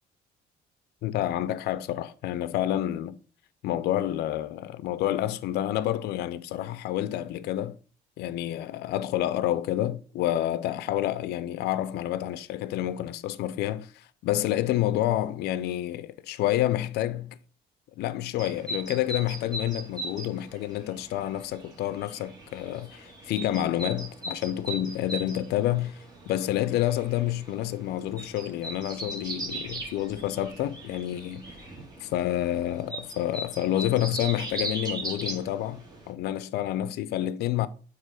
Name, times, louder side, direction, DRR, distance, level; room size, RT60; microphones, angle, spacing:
voice 1, 1.0-3.2 3.6-7.8 8.2-17.4 18.0-31.7 32.0-37.7, left 13 dB, 75° left, 0.5 m, -29 dB
sound 1, 18.4-36.1, right 2 dB, 25° right, 2.1 m, -39 dB
7.5 x 3.0 x 4.7 m
cardioid pair, 110°, 17 cm